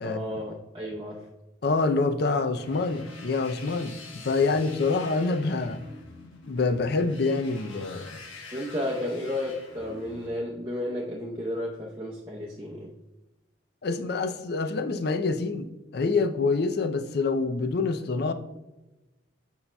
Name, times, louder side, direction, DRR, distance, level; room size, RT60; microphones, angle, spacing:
voice 1, 0.0-1.3 8.5-12.9, left 1 dB, 25° right, -3 dB, 0.7 m, -33 dB
voice 2, 1.6-5.8 6.5-8.2 13.8-18.3, left 3 dB, 55° left, 9 dB, 0.5 m, -26 dB
sound 1, 2.6-10.3, left 3 dB, 90° left, 1.2 m, -46 dB
8.3 x 5.5 x 2.2 m, 1.0 s
head